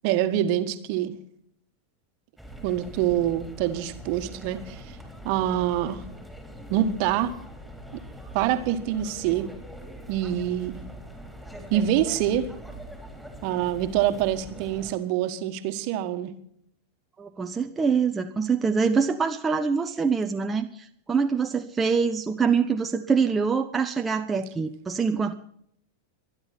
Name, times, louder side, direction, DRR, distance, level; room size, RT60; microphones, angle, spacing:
voice 1, 0.0-1.1 2.6-4.8 5.2-6.0 6.7-7.3 7.9-8.0 8.3-9.5 10.1-10.8 11.7-12.5 13.4-16.3, right 11 dB, 45° right, 9 dB, 1.6 m, -25 dB
sound 1, 2.4-14.9, equal, 5° left, 3.8 m, -42 dB
voice 2, 17.2-25.3, right 5 dB, 15° right, 5 dB, 0.8 m, -25 dB
25.5 x 10.5 x 4.3 m, 0.68 s
figure-of-eight pair, 90°, 0 cm